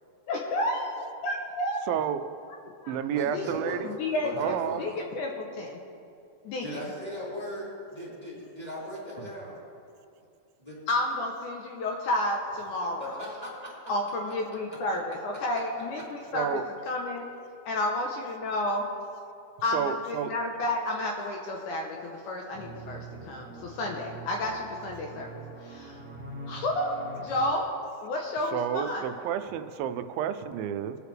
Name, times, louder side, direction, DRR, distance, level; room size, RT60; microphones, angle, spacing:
voice 1, 0.3-1.8 2.7-3.0 3.3-5.8 6.4-6.8 10.9-13.2 13.9-17.3 17.7-18.8 19.6-25.3 25.6-26.0 26.5-27.7 28.0-29.0, left 1 dB, 70° left, 1 dB, 2.1 m, -31 dB
voice 2, 1.9-2.2 2.9-3.9 4.4-4.9 16.3-16.6 19.7-20.3 28.5-31.0, right 9 dB, 90° right, 11 dB, 2.4 m, -30 dB
voice 3, 3.1-3.8 4.2-5.0 6.6-9.6 10.6-10.8 13.0-13.8 15.8-15.9, equal, 10° left, -7 dB, 2.6 m, -38 dB
sound 1, 22.5-27.5, right 3 dB, 35° right, 0.9 m, -43 dB
21.0 x 8.1 x 3.3 m, 2.6 s
omnidirectional pair, 4.1 m